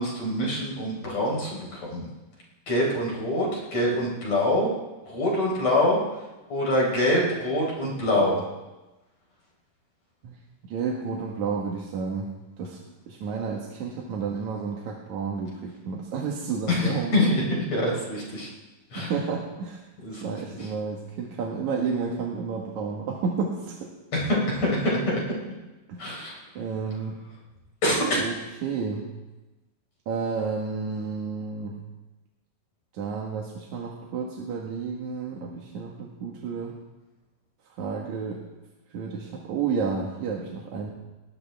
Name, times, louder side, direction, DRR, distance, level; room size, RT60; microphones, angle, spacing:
voice 1, 0.0-2.1 2.7-4.7 5.0-6.0 6.5-8.4 16.7-17.4 17.7-18.5 18.9-19.1 20.0-20.2 24.1-25.4 26.0-26.4 27.8-28.2, left 1 dB, 45° left, -3 dB, 5.3 m, -25 dB
voice 2, 10.2-12.3 12.6-12.8 13.1-17.3 19.0-19.8 20.1-23.9 25.9-26.1 26.5-27.2 28.1-29.1 30.1-31.8 32.9-36.8 37.7-38.4 38.9-40.9, right 5 dB, 55° right, -2 dB, 2.6 m, -31 dB
19.5 x 18.5 x 3.5 m, 1.1 s
omnidirectional pair, 4.4 m